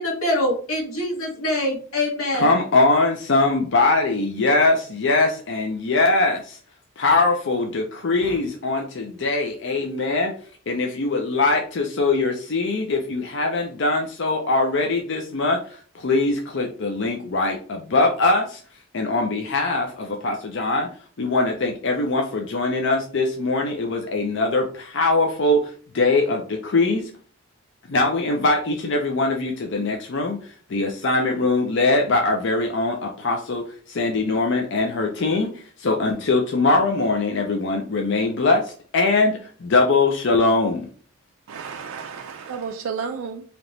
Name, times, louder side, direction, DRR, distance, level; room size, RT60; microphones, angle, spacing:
voice 1, 0.0-2.5, left 1 dB, 75° left, -1 dB, 1.7 m, -24 dB
voice 2, 2.3-6.6 7.0-10.3 10.7-18.6 18.9-20.9 21.2-27.1 27.9-40.9, left 3 dB, 55° left, 2 dB, 0.5 m, -22 dB
voice 3, 41.5-43.4, right 6 dB, 70° right, 4 dB, 0.4 m, -32 dB
3.4 x 2.9 x 3.9 m, 0.43 s
head